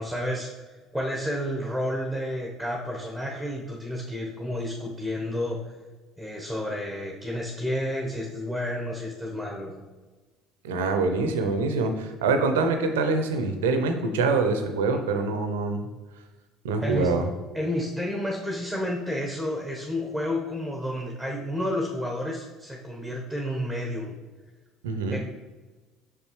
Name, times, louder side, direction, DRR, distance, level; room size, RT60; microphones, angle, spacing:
voice 1, 0.0-5.6 6.2-9.9 16.8-17.1 17.5-24.1 25.1-25.2, left 1 dB, ahead, -1 dB, 1.1 m, -31 dB
voice 2, 10.6-15.9 16.6-17.3 24.8-25.2, right 3 dB, 75° right, 7 dB, 0.7 m, -25 dB
6.1 x 5.7 x 3.1 m, 1.3 s
hypercardioid pair, 60°, 0 cm